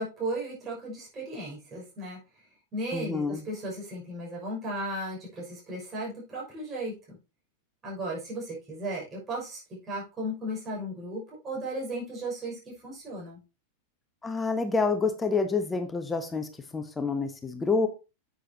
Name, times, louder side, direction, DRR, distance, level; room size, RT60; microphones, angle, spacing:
voice 1, 0.0-2.2 2.7-7.2 7.8-13.4, right 1 dB, 20° right, -4 dB, 6.1 m, -35 dB
voice 2, 2.9-3.4 14.2-17.9, left 4 dB, 15° left, 8 dB, 1.1 m, -28 dB
9.9 x 8.0 x 2.9 m, 0.29 s
figure-of-eight pair, 90°, 0 cm